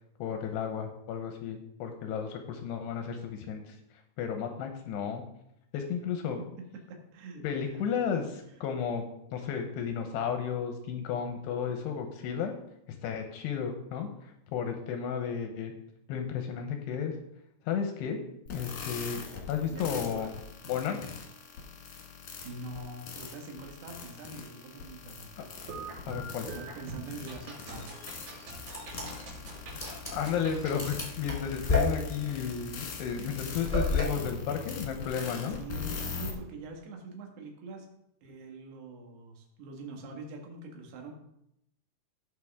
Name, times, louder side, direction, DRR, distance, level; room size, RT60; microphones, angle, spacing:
voice 1, 0.2-3.8 4.2-5.2 5.7-6.4 7.4-9.0 9.3-12.5 13.0-15.7 16.1-17.1 17.7-18.2 18.5-19.2 19.5-20.3 20.7-21.1 25.4-25.5 26.1-26.5 29.8-35.6, left 7 dB, 80° left, 5 dB, 2.4 m, -33 dB
voice 2, 6.4-7.8 19.7-20.4 22.4-25.7 26.5-27.9 35.5-37.9 38.2-41.1, right 2 dB, 60° right, 1 dB, 3.3 m, -44 dB
sound 1, 18.5-36.3, left 5 dB, 65° left, 1.9 m, -42 dB
sound 2, 25.5-31.0, right 2 dB, 90° right, 6.0 m, -44 dB
sound 3, 28.6-34.0, left 3 dB, 15° left, 1.3 m, -32 dB
17.5 x 6.6 x 3.6 m, 0.79 s
omnidirectional pair, 5.9 m